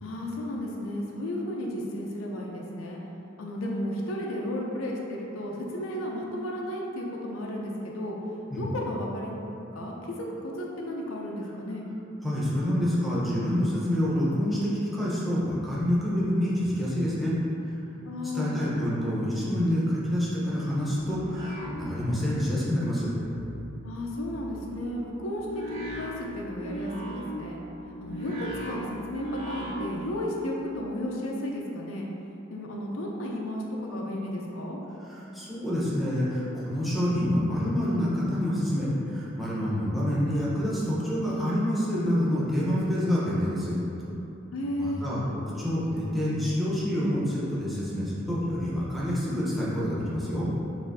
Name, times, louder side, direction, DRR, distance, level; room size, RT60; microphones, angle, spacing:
voice 1, 0.0-3.0 3.4-8.2 8.6-11.9 18.0-18.6 23.8-25.5 25.9-27.6 28.0-32.1 32.5-34.8 44.5-45.1, left 1 dB, 85° left, -2 dB, 0.6 m, -33 dB
voice 2, 12.2-17.3 17.6-17.7 18.3-23.1 35.1-43.8 44.8-45.2 45.6-50.5, equal, ahead, -8 dB, 0.8 m, -27 dB
sound 1, 20.8-22.4 22.7-30.1, equal, 85° right, 1.5 m, -39 dB
6.1 x 2.7 x 2.6 m, 3.0 s
head